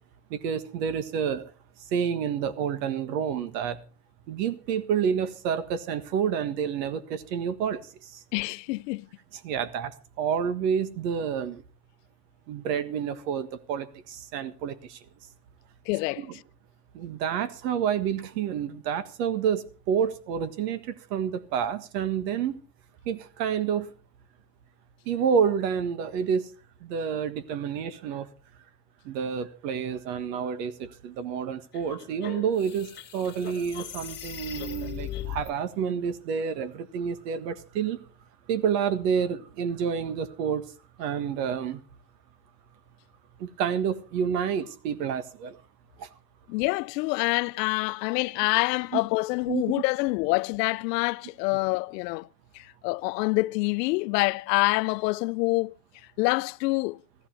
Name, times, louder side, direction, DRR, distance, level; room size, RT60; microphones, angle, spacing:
voice 1, 0.3-1.5 1.9-3.8 4.3-8.2 9.4-11.6 12.5-15.0 16.2-16.4 16.9-22.6 23.0-23.9 25.1-26.5 26.8-28.3 29.0-38.0 38.5-40.7 41.0-41.8 43.4-45.6 46.0-46.1 48.9-49.0 49.5-49.8, right 7 dB, 75° right, 1.7 m, -29 dB
voice 2, 8.3-9.1 15.9-16.2 46.5-52.3 52.5-55.7 56.2-57.0, left 24 dB, 75° left, 0.6 m, -26 dB
sound 1, 31.7-35.5, left 11 dB, 20° left, 1.7 m, -38 dB
14.5 x 14.0 x 4.5 m
cardioid pair, 175°, 49 cm